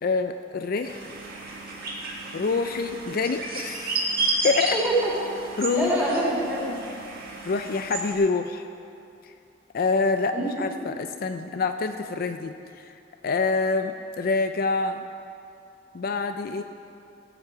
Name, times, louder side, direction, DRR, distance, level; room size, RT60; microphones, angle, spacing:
voice 1, 0.0-1.0 2.3-4.1 4.4-4.8 5.6-6.0 7.5-8.7 9.7-12.5 12.8-12.9 13.2-15.0 15.9-16.6, left 4 dB, 50° left, 7 dB, 0.4 m, -26 dB
sound 1, 0.8-8.1, right 2 dB, 55° right, 1.7 m, -32 dB
voice 2, 4.7-5.1 5.7-6.8 10.3-10.5, right 1 dB, 10° right, -6 dB, 3.5 m, -25 dB
16.0 x 7.4 x 5.8 m, 2.6 s
head